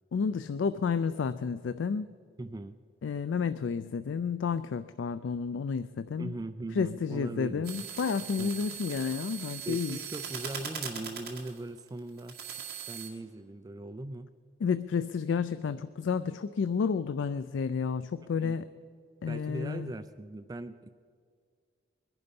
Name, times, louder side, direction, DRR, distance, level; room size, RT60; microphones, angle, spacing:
voice 1, 0.1-2.1 3.0-6.4 6.7-10.0 14.6-18.7 19.2-19.9, left 6 dB, 90° left, 13 dB, 0.4 m, -31 dB
voice 2, 2.4-2.8 6.2-7.9 8.4-8.5 9.7-12.4 12.9-14.3 18.4-18.6 19.3-20.9, right 2 dB, 20° right, 11 dB, 0.3 m, -40 dB
sound 1, 7.6-13.1, right 7 dB, 55° right, 2.0 m, -40 dB
21.5 x 10.5 x 5.3 m, 2.1 s
head